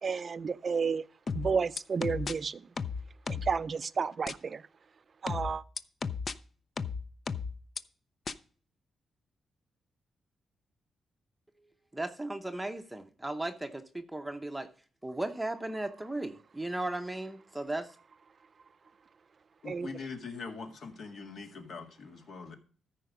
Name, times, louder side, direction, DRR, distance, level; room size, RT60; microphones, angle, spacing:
voice 1, 0.0-1.0 1.3-2.7 3.3-4.6 5.2-5.6 19.7-20.0, right 5 dB, 40° right, 0.4 m, -31 dB
sound 1, 1.3-2.3 2.8-3.6 4.3-4.4 5.3-6.3 6.8-7.8 8.3-8.4, left 5 dB, 35° left, 0.5 m, -34 dB
voice 2, 11.9-14.7 15.0-18.0, right 2 dB, 5° right, 0.7 m, -36 dB
voice 3, 19.6-22.6, left 4 dB, 60° left, 1.8 m, -42 dB
14.0 x 5.0 x 5.1 m
wide cardioid pair, 140°, 0 cm